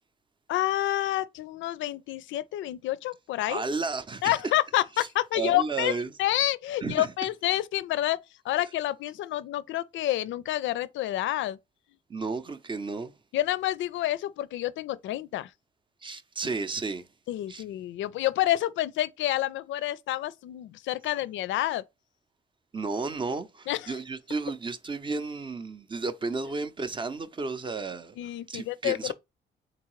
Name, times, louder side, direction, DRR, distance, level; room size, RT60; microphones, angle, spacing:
voice 1, 0.5-3.6 4.2-8.2 8.4-11.6 13.3-15.5 17.3-21.8 23.7-24.0 28.2-29.1, left 14 dB, 75° left, 0.4 m, -28 dB
voice 2, 3.5-4.4 5.0-5.1 5.3-6.1 6.8-7.1 12.1-13.1 16.0-17.1 17.5-17.6 22.7-29.1, right 4 dB, 25° right, 0.6 m, -33 dB
3.8 x 3.6 x 3.1 m
cardioid pair, 90°, 20 cm